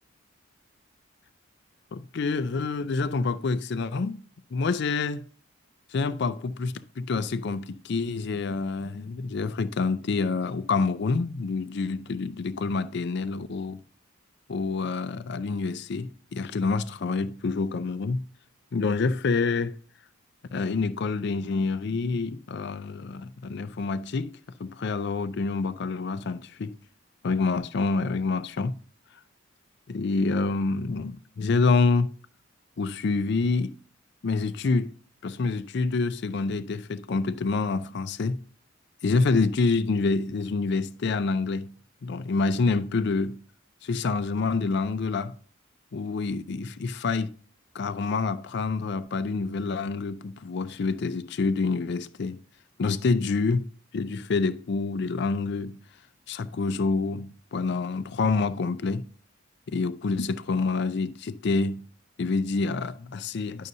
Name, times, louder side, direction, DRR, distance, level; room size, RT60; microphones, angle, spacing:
voice 1, 1.9-4.2 4.5-5.2 5.9-13.8 14.5-18.2 18.7-19.8 20.5-26.8 27.2-28.8 29.9-32.1 32.8-33.7 34.2-34.9 35.2-38.4 39.0-41.7 42.0-43.4 43.8-45.3 45.9-47.3 47.7-52.4 52.8-53.7 53.9-55.8 56.3-59.1 59.7-61.8 62.2-63.7, left 4 dB, 55° left, 0.4 m, -27 dB
11.0 x 6.4 x 2.7 m
head